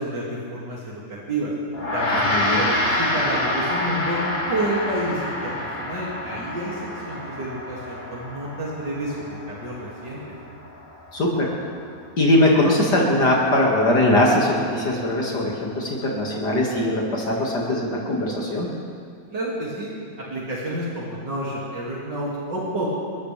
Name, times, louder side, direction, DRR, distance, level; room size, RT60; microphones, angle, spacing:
voice 1, 0.0-1.5 1.9-4.2 4.4-10.2 19.3-22.9, right 1 dB, 70° right, -7 dB, 3.2 m, -29 dB
Gong, 1.7-11.4, left 1 dB, 35° left, 3.3 m, -27 dB
voice 2, 2.1-2.6 11.1-11.5 12.2-18.7, left 1 dB, 65° left, -3 dB, 2.7 m, -21 dB
29.0 x 14.0 x 3.4 m, 2.3 s
omnidirectional pair, 1.9 m